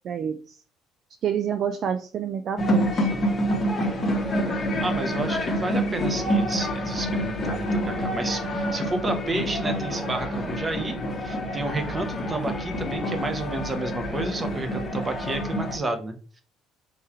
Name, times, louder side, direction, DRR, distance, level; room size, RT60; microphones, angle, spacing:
voice 1, 0.0-0.6 1.2-3.1, right 8 dB, 40° right, 8 dB, 0.3 m, -28 dB
sound 1, 2.6-15.8, equal, 20° left, 0.9 m, -27 dB
voice 2, 4.8-16.1, right 2 dB, 15° right, 7 dB, 0.7 m, -31 dB
3.6 x 3.1 x 4.3 m, 0.40 s
cardioid pair, 165°, 0 cm